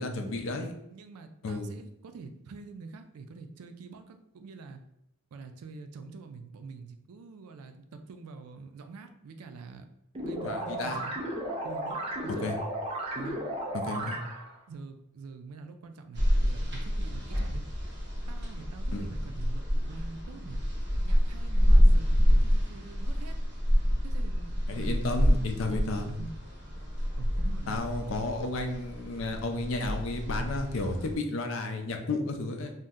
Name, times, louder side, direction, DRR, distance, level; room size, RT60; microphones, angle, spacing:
voice 1, 0.0-0.7 1.4-1.7 10.4-11.0 12.4-12.5 13.7-14.2 18.9-19.1 24.7-26.2 27.7-32.7, left 2 dB, 65° left, 5 dB, 0.4 m, -32 dB
voice 2, 0.9-4.8 5.3-9.9 10.2-11.2 11.6-12.5 13.1-13.5 13.9-14.2 14.7-17.7 18.3-20.6 21.0-23.4 24.0-25.0 25.5-26.3 27.2-27.8, right 4 dB, 90° right, 8 dB, 0.4 m, -45 dB
sound 1, 10.1-14.6, right 1 dB, 25° right, 0.4 m, -34 dB
sound 2, 16.1-31.1, equal, 50° right, 0.9 m, -27 dB
2.7 x 2.1 x 3.6 m, 0.80 s
head